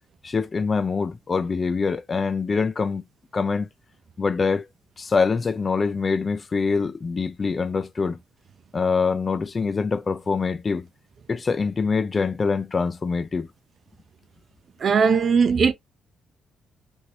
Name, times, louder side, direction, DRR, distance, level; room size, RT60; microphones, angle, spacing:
voice 1, 0.2-3.0 3.3-3.7 4.2-4.7 5.0-8.2 8.7-10.9 11.3-13.5, left 4 dB, 35° left, 0.4 m, -24 dB
voice 2, 14.8-15.7, right 5 dB, 55° right, 0.5 m, -18 dB
2.8 x 2.7 x 2.9 m
cardioid pair, 75°, 0 cm